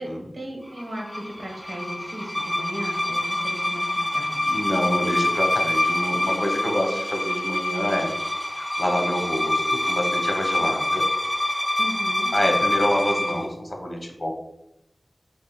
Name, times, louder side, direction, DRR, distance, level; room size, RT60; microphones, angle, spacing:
voice 1, 0.0-4.6 11.8-12.3, equal, 75° right, 0 dB, 1.0 m, -36 dB
sound 1, 0.8-13.5, left 1 dB, 5° left, 0.4 m, -26 dB
voice 2, 4.4-8.1 8.5-11.0 12.3-14.3, equal, 50° left, 1 dB, 0.8 m, -27 dB
3.2 x 2.4 x 4.3 m, 0.86 s
wide cardioid pair, 45°, 0 cm